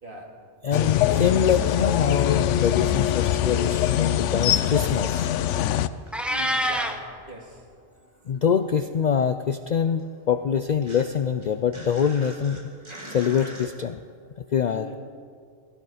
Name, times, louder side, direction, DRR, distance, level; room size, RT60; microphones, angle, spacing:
voice 1, 0.0-0.4 6.3-7.6 14.7-15.0, right 1 dB, 45° right, -1 dB, 2.4 m, -39 dB
voice 2, 0.6-5.3 8.3-12.6 13.1-14.0 14.5-14.9, left 7 dB, 55° left, 9 dB, 0.5 m, -24 dB
sound 1, 0.7-5.9, left 11 dB, 85° left, 0.9 m, -23 dB
sound 2, 5.9-7.8 8.1-13.7, right 1 dB, 25° right, 2.2 m, -45 dB
Meow, 6.1-7.0, equal, ahead, 0.7 m, -25 dB
17.5 x 16.0 x 5.0 m, 2.1 s
omnidirectional pair, 1.2 m